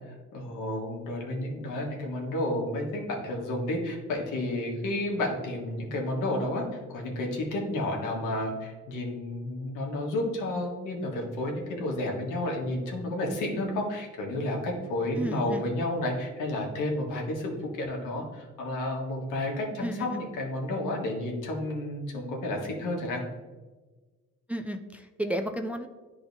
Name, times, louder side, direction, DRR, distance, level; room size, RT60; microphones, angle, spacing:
voice 1, 0.3-23.2, left 1 dB, 90° left, -1 dB, 1.4 m, -31 dB
voice 2, 15.1-15.6 19.8-20.1 24.5-25.9, right 1 dB, 5° right, 5 dB, 0.4 m, -32 dB
10.5 x 3.9 x 2.7 m, 1.3 s
cardioid pair, 90°, 30 cm